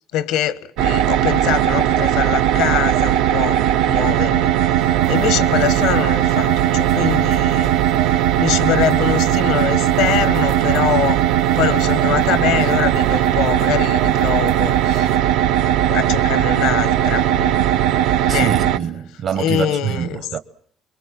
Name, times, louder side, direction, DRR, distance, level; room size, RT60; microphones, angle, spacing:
voice 1, 0.1-3.6 3.9-7.7 8.4-11.2 11.5-15.1 15.9-17.6 18.3-18.5 19.4-20.3, left 11 dB, 85° left, 1.2 m, -23 dB
sound 1, 0.8-18.8, right 11 dB, 85° right, 1.0 m, -18 dB
sound 2, 4.8-15.2, right 11 dB, 70° right, 2.6 m, -38 dB
voice 2, 18.3-20.4, right 9 dB, 55° right, 1.1 m, -25 dB
25.0 x 23.0 x 7.6 m
cardioid pair, 145°, 0 cm